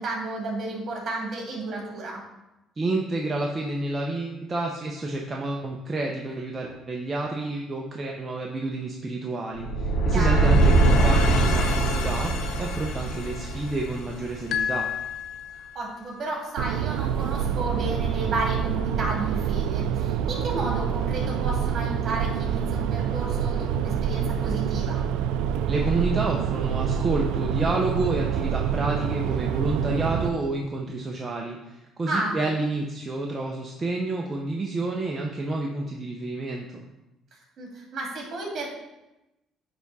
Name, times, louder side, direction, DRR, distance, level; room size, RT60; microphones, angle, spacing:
voice 1, 0.0-2.2 10.1-10.6 15.5-25.0 32.1-32.4 37.3-38.7, right 2 dB, 50° right, -2 dB, 2.7 m, -32 dB
voice 2, 2.8-12.3 12.6-14.9 25.7-36.8, right 2 dB, 25° right, -1 dB, 0.8 m, -29 dB
sound 1, 9.6-14.6, right 2 dB, 90° left, 0.9 m, -22 dB
sound 2, 14.5-16.1, left 8 dB, 65° left, 0.5 m, -30 dB
sound 3, 16.6-30.3, right 8 dB, 85° right, 0.4 m, -26 dB
9.6 x 3.6 x 4.2 m, 0.97 s
cardioid pair, 100°, 0 cm